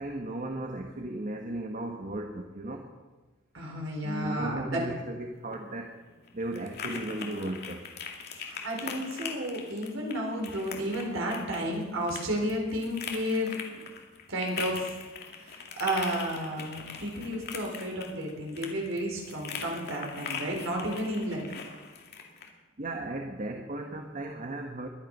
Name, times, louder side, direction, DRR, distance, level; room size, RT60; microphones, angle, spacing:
voice 1, 0.0-2.9 4.0-6.0 6.3-7.9 22.8-24.9, right 1 dB, 40° right, 3 dB, 1.4 m, -36 dB
voice 2, 3.5-4.8 8.3-13.5 14.3-15.0 15.4-21.4, equal, 80° right, 0 dB, 4.6 m, -32 dB
sound 1, 5.3-22.5, left 5 dB, 55° left, 2.3 m, -41 dB
21.5 x 11.0 x 5.6 m, 1.2 s
head